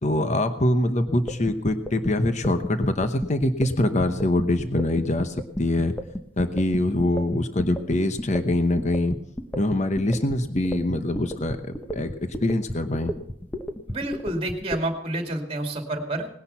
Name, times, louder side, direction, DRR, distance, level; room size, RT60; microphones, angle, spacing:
voice 1, 0.0-6.0 6.4-9.1 9.5-13.1, left 1 dB, 35° left, 9 dB, 0.9 m, -24 dB
sound 1, 1.1-14.8, equal, 10° left, 1.0 m, -32 dB
voice 2, 13.9-16.3, right 1 dB, 30° right, 4 dB, 2.4 m, -29 dB
19.0 x 10.5 x 5.8 m, 0.71 s
head